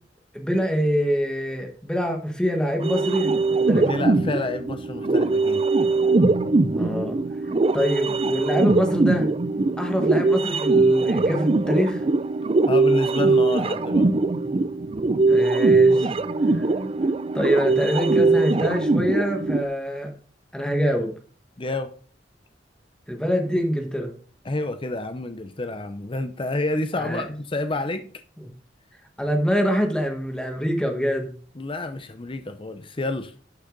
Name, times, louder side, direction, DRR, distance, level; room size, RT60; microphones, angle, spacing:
voice 1, 0.3-3.9 6.7-7.2 7.7-9.3 9.8-12.0 15.3-16.1 16.5-16.7 17.3-20.1 20.5-21.1 23.1-24.2 27.0-27.2 29.2-31.3, equal, 5° left, 1.6 m, -25 dB
sound 1, 2.8-19.6, right 3 dB, 35° right, 0.5 m, -21 dB
voice 2, 3.8-5.6 12.7-14.1 21.6-21.9 24.4-28.1 31.6-33.3, left 2 dB, 30° left, 0.7 m, -29 dB
11.5 x 6.5 x 3.9 m
head